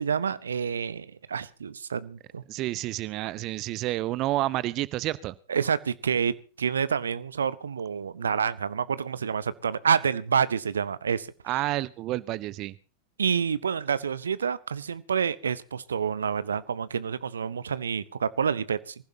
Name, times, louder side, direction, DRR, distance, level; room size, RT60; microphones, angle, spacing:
voice 1, 0.0-2.4 5.5-11.3 13.2-18.9, right 7 dB, 70° right, 0.8 m, -28 dB
voice 2, 2.5-5.3 11.5-12.7, right 16 dB, 40° right, 0.7 m, -29 dB
24.5 x 15.5 x 2.8 m
figure-of-eight pair, 90°, 0 cm